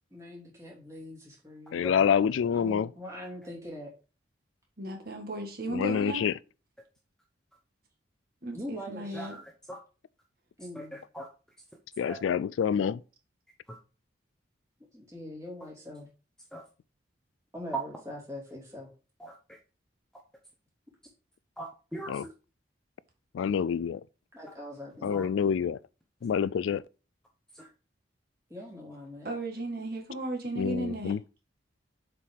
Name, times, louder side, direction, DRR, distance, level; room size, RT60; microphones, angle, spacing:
voice 1, 0.1-2.0 2.5-4.0 8.5-9.3 10.6-11.0 14.9-16.1 17.5-18.9 24.3-25.1 27.6-27.7 28.5-29.3, left 1 dB, 15° right, 2.8 m, -43 dB
voice 2, 1.7-2.9 5.7-6.3 12.0-13.0 22.1-22.2 23.3-24.0 25.0-25.8 26.2-26.8 30.6-31.2, left 7 dB, 90° left, 0.3 m, -27 dB
voice 3, 4.8-6.3 8.4-9.4 29.2-31.2, right 2 dB, 50° right, 1.6 m, -35 dB
voice 4, 9.1-9.8 10.7-11.3 12.0-12.2 13.7-13.8 16.5-16.6 19.2-19.6 21.6-22.2 25.1-25.3 27.5-27.7, right 1 dB, 5° left, 0.8 m, -42 dB
7.4 x 4.6 x 3.6 m
head